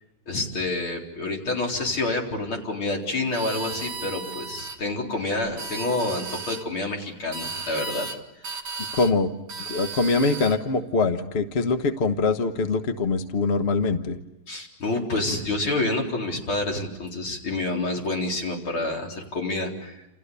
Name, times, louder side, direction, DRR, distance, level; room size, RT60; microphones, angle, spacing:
voice 1, 0.3-8.1 14.5-20.1, left 2 dB, 80° left, 0 dB, 4.9 m, -28 dB
sound 1, 3.3-4.8 5.4-6.6 7.3-8.2 8.4-9.1 9.5-10.6, right 4 dB, 65° right, 2.4 m, -35 dB
voice 2, 8.9-9.3 9.7-14.2, left 3 dB, 35° left, 8 dB, 1.3 m, -23 dB
29.5 x 28.5 x 6.9 m, 0.95 s
omnidirectional pair, 2.2 m